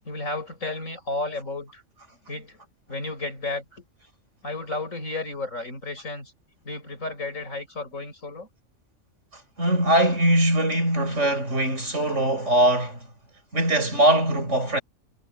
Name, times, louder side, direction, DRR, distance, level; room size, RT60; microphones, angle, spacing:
voice 1, 0.0-1.8 2.3-2.6 2.9-3.8 4.4-6.3 6.6-8.5 11.1-11.3 12.1-12.5, left 2 dB, 90° left, 6.9 m, -33 dB
voice 2, 9.6-13.0 13.5-14.8, right 1 dB, 65° right, 7.2 m, -21 dB
omnidirectional pair, 1.3 m